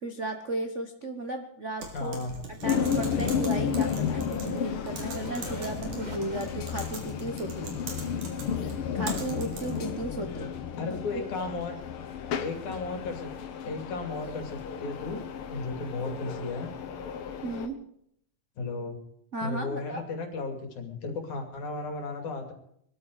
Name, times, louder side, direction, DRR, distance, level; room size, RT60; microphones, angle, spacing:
voice 1, 0.0-2.2 2.6-7.7 8.9-10.5 10.8-11.5 17.4-17.8 19.3-20.0, right 1 dB, 60° right, 5 dB, 0.7 m, -35 dB
Typing, 1.8-9.9, right 3 dB, 85° right, 4.4 m, -42 dB
voice 2, 1.9-2.3 10.8-11.8 12.4-13.3 13.6-15.2 15.5-16.7 18.6-19.0 19.4-22.5, left 3 dB, 75° left, 4 dB, 3.9 m, -34 dB
sound 1, 2.6-17.7, left 7 dB, 55° left, 1.7 m, -33 dB
sound 2, 3.8-7.1, right 1 dB, 15° right, 1.9 m, -46 dB
22.5 x 13.0 x 4.9 m, 0.71 s
omnidirectional pair, 3.5 m